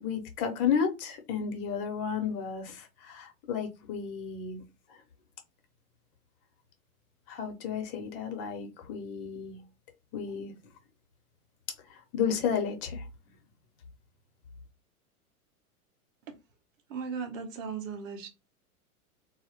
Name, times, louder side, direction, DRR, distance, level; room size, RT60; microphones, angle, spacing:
voice 1, 0.0-4.6 7.3-9.6 10.1-10.5 11.9-13.0, left 7 dB, 40° left, 0.7 m, -32 dB
voice 2, 16.9-18.3, right 6 dB, 60° right, 0.8 m, -37 dB
2.1 x 2.0 x 2.9 m
hypercardioid pair, 105°, 44 cm